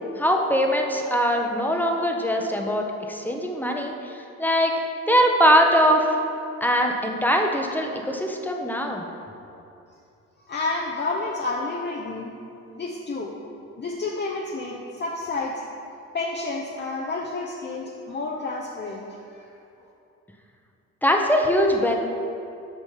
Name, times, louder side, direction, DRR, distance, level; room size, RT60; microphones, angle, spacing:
voice 1, 0.2-4.8 5.1-6.1 6.6-9.0 21.0-22.0, equal, 5° left, 2 dB, 1.0 m, -22 dB
voice 2, 10.5-12.3 12.7-13.3 13.8-15.6 16.1-19.5, left 3 dB, 35° left, -1 dB, 0.9 m, -30 dB
8.3 x 6.1 x 5.6 m, 2.6 s
cardioid pair, 90°, 30 cm